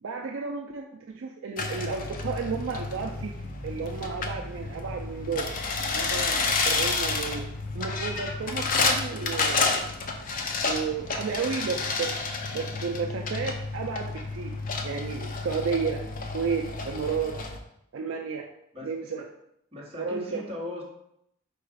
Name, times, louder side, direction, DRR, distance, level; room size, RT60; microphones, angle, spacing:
voice 1, 0.0-3.3 3.6-7.5 7.7-9.9 10.7-12.1 12.5-14.6 14.8-16.0 16.3-17.3 17.9-18.4 18.8-19.2 20.0-20.4, right 5 dB, 60° right, 2 dB, 0.4 m, -32 dB
sound 1, 1.6-17.6, left 4 dB, 40° left, 0.5 m, -30 dB
voice 2, 18.7-19.3 19.7-20.8, left 1 dB, 30° right, -3 dB, 1.0 m, -38 dB
4.7 x 2.4 x 4.8 m, 0.76 s
head